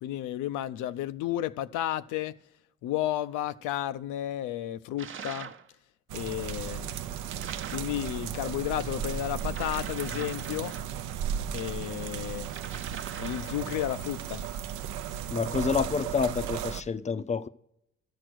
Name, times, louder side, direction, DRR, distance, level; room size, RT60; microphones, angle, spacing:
voice 1, 0.0-2.3 2.8-5.5 6.1-6.9 7.7-10.7 11.5-12.5 13.2-14.4, left 13 dB, 85° left, 0.5 m, -32 dB
sound 1, 5.0-5.7 7.3-8.0 9.5-11.2 12.4-13.8, right 7 dB, 40° right, 0.7 m, -42 dB
sound 2, 6.1-16.8, right 9 dB, 85° right, 0.6 m, -35 dB
voice 2, 15.3-17.5, left 5 dB, 25° left, 0.4 m, -28 dB
12.5 x 6.5 x 6.1 m
cardioid pair, 90°, 30 cm